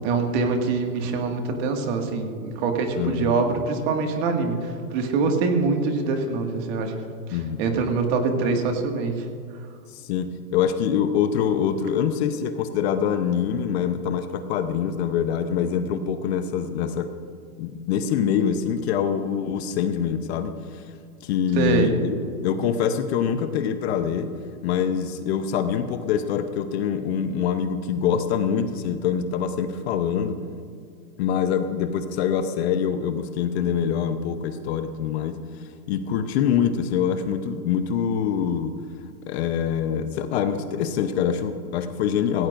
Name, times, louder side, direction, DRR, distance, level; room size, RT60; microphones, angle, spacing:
voice 1, 0.0-6.9 7.3-9.3 21.5-21.9, right 4 dB, 40° right, 3 dB, 2.0 m, -24 dB
voice 2, 3.0-3.4 7.3-7.6 9.9-17.1 17.6-20.9 21.2-22.2 22.4-24.3 24.6-30.4 31.2-38.7 39.3-42.5, left 8 dB, 40° left, 9 dB, 0.8 m, -25 dB
17.0 x 16.5 x 2.6 m, 2.3 s
hypercardioid pair, 140°, 47 cm